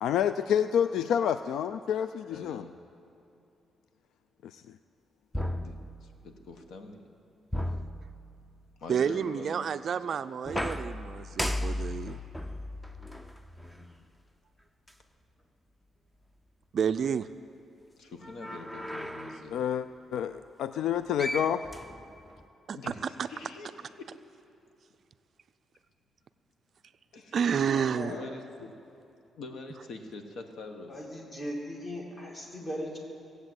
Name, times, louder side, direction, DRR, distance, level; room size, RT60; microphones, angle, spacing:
voice 1, 0.0-2.6 4.4-4.6 19.5-19.9 20.1-21.6, left 9 dB, 80° left, 12 dB, 0.3 m, -28 dB
voice 2, 2.3-2.8 5.3-7.1 8.8-10.0 18.0-19.6 22.7-24.1 27.1-27.5 28.1-28.7 29.3-30.9, left 3 dB, 65° left, 5 dB, 1.2 m, -44 dB
sound 1, 5.3-6.4 7.5-8.7 10.5-14.0 14.9-15.0 18.2-19.5 20.9-21.0 21.2-22.5, left 1 dB, 5° left, 0.5 m, -36 dB
voice 3, 8.9-12.2 16.7-17.3 22.7-22.8 27.3-28.1, right 7 dB, 45° right, 12 dB, 0.3 m, -29 dB
voice 4, 27.7-28.3 30.9-33.0, equal, 30° left, -1 dB, 2.5 m, -38 dB
18.0 x 8.0 x 7.9 m, 2.7 s
cardioid pair, 150°, 0 cm